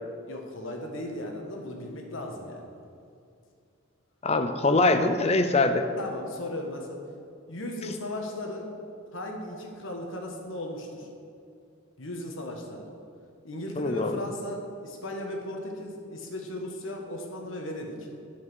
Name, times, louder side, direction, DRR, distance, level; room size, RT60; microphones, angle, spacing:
voice 1, 0.3-2.6 6.0-7.0 7.5-8.8 9.1-11.1 12.0-12.9 13.4-18.1, left 1 dB, 70° left, 2 dB, 1.5 m, -36 dB
voice 2, 4.2-5.9 13.8-14.2, left 2 dB, 30° left, 8 dB, 0.5 m, -23 dB
8.4 x 7.4 x 6.3 m, 2.4 s
head